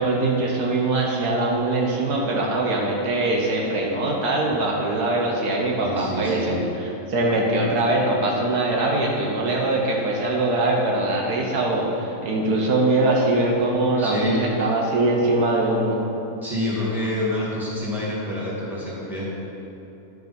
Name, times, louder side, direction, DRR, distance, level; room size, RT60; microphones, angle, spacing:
voice 1, 0.0-6.6 7.1-16.0, right 2 dB, 80° right, -1 dB, 1.6 m, -22 dB
voice 2, 5.8-6.6 13.9-14.7 16.4-19.2, left 1 dB, ahead, -8 dB, 2.2 m, -27 dB
11.0 x 6.5 x 4.3 m, 3.0 s
omnidirectional pair, 1.6 m